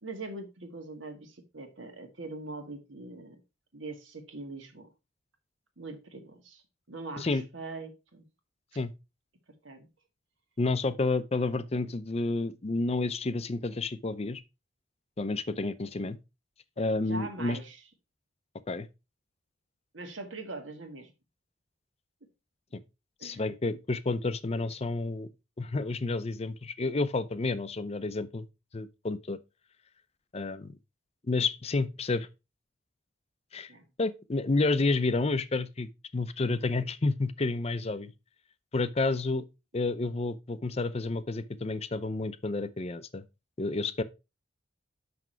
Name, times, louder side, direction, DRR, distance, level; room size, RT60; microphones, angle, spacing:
voice 1, 0.0-3.4 3.7-4.9 5.8-6.6 6.9-8.3 9.6-9.9 17.1-17.8 19.9-21.1 23.2-23.5 33.7-33.9, right 2 dB, 80° right, 1.7 m, -42 dB
voice 2, 10.6-14.4 15.2-16.2 16.8-17.6 18.7-18.9 23.2-25.3 25.6-28.5 28.7-29.4 30.3-30.8 31.3-32.3 33.5-33.7 34.0-38.1 38.7-39.4 39.7-43.2 43.6-44.0, left 3 dB, 35° left, 0.5 m, -30 dB
6.0 x 5.9 x 4.5 m
head